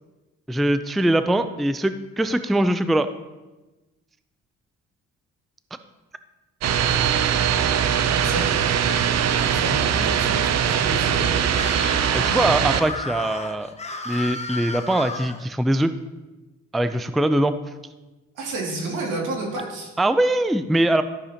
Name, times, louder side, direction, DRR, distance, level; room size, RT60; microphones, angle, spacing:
voice 1, 0.5-3.1 12.1-13.7 14.1-15.9 16.7-17.5 20.0-21.0, right 1 dB, ahead, 11 dB, 0.3 m, -22 dB
sound 1, 6.6-12.8, right 8 dB, 60° right, 0.6 m, -21 dB
voice 2, 8.1-8.5 9.4-11.3 18.3-19.9, right 2 dB, 85° right, -2 dB, 2.4 m, -30 dB
Screaming, 11.5-15.4, left 3 dB, 20° left, 0.8 m, -33 dB
13.0 x 6.7 x 2.8 m, 1.1 s
cardioid pair, 90°, 30 cm